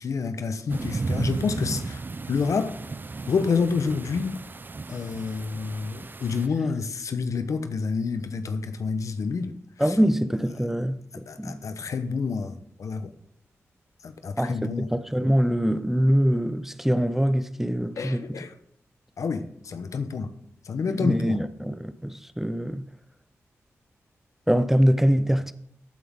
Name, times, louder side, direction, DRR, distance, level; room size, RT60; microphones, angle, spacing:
voice 1, 0.0-2.0 2.3-2.8 3.3-4.4 4.9-9.5 9.9-10.0 11.1-13.1 14.0-14.9 18.0-18.5 19.2-20.3 20.6-21.4, left 5 dB, 75° left, 0.9 m, -28 dB
sound 1, 0.7-6.5, right 3 dB, 35° right, 0.5 m, -34 dB
voice 2, 9.8-11.6 14.4-18.2 20.9-22.8 24.5-25.5, equal, 5° right, 0.7 m, -24 dB
14.5 x 8.9 x 3.6 m
cardioid pair, 55°, 5 cm